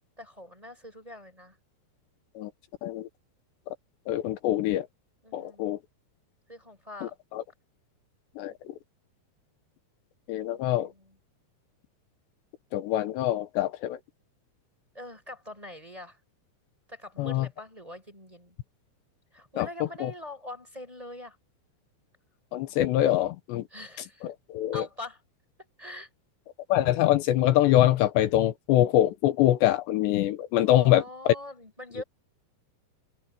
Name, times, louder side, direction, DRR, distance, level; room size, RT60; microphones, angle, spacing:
voice 1, 0.0-1.6 5.2-5.7 6.5-7.2 10.5-11.2 14.9-16.2 16.9-18.6 19.3-21.4 23.7-24.3 24.7-25.2 25.8-26.1 30.6-32.0, left 1 dB, 10° right, 4.1 m, -43 dB
voice 2, 4.1-4.9 5.3-5.8 7.0-7.4 8.4-8.7 10.3-10.9 12.7-14.0 17.2-17.5 19.6-19.7 20.0-20.1 22.5-23.7 24.5-24.8 26.7-31.0, left 13 dB, 80° left, 3.1 m, -24 dB
omnidirectional pair, 5.2 m